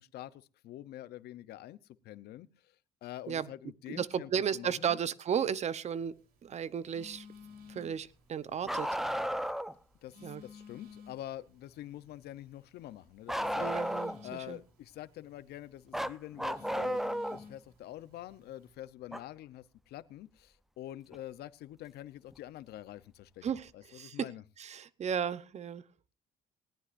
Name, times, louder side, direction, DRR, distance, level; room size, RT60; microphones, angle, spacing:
voice 1, 0.0-1.8 2.0-2.8 3.0-5.0 10.0-14.0 14.2-24.4, left 13 dB, 70° left, 16 dB, 0.8 m, -46 dB
voice 2, 3.9-6.2 6.4-7.3 7.7-8.9 10.2-10.4 13.6-14.6 23.4-24.3 24.6-25.8, right 8 dB, 40° right, 17 dB, 0.9 m, -34 dB
Telephone, 5.9-18.7, left 5 dB, 65° right, 3.7 m, -55 dB
Bark, 8.6-9.7 13.3-14.3 15.9-17.4 19.1-19.2 21.1-21.2 22.3-22.4, equal, ahead, 0.7 m, -33 dB
19.5 x 14.5 x 2.6 m, 0.35 s
cardioid pair, 110°, 17 cm